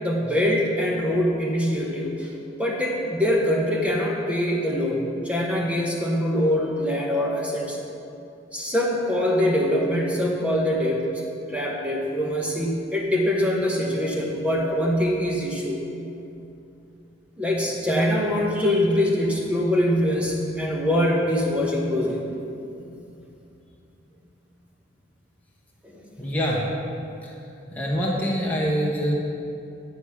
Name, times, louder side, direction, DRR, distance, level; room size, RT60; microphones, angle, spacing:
voice 1, 0.0-2.3 2.6-7.8 8.5-11.1 11.5-15.8 17.4-22.2 25.8-25.9, left 1 dB, 5° right, -2 dB, 1.1 m, -23 dB
voice 2, 26.2-26.6 27.2-27.3 27.7-29.1, equal, 10° left, -4 dB, 1.4 m, -25 dB
11.0 x 4.8 x 7.1 m, 2.7 s
head